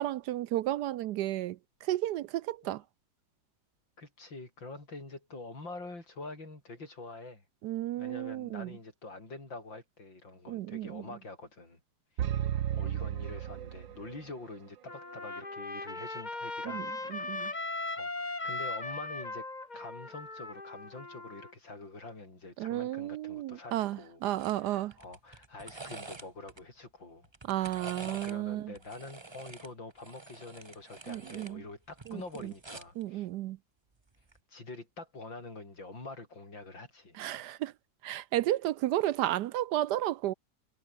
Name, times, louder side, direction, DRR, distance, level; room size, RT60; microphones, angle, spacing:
voice 1, 0.0-2.8 7.6-8.7 10.5-11.0 16.6-17.5 22.6-24.9 27.5-28.7 31.1-31.6 32.1-32.5 33.0-33.6 37.2-37.7 38.0-40.3, right 14 dB, 70° right, 1.1 m, -33 dB
voice 2, 4.0-7.4 8.0-11.8 12.2-12.5 12.7-17.5 17.9-19.5 19.7-24.2 24.5-27.3 27.5-33.3 34.5-37.2, left 3 dB, 85° left, 6.8 m, -46 dB
sound 1, 12.2-14.3, right 11 dB, 90° right, 1.8 m, -33 dB
Trumpet, 14.9-21.5, left 2 dB, 25° left, 2.4 m, -38 dB
sound 2, 24.4-24.6 24.9-26.6 27.2-28.4 28.7-31.5 31.9-33.0 34.2-34.4, right 3 dB, 20° right, 0.9 m, -47 dB
omnidirectional pair, 2.0 m